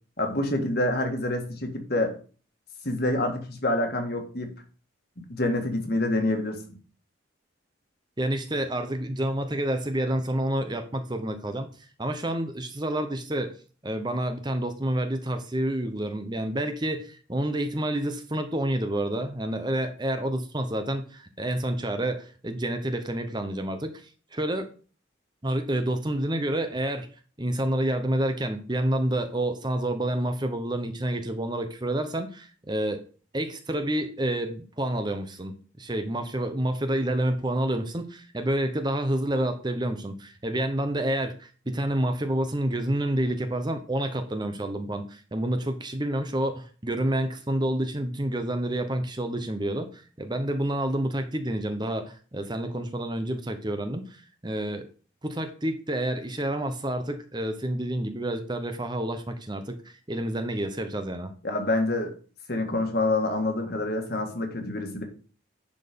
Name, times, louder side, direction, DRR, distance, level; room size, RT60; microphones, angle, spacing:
voice 1, 0.2-2.1 2.8-4.5 5.3-6.6 61.4-62.1 62.5-65.0, left 2 dB, 50° left, 4 dB, 1.8 m, -27 dB
voice 2, 8.2-11.7 12.0-13.6 13.8-24.7 25.4-27.1 27.4-33.0 33.3-54.9 55.2-61.3, right 1 dB, 20° right, 7 dB, 0.8 m, -29 dB
10.5 x 4.5 x 5.2 m, 0.39 s
head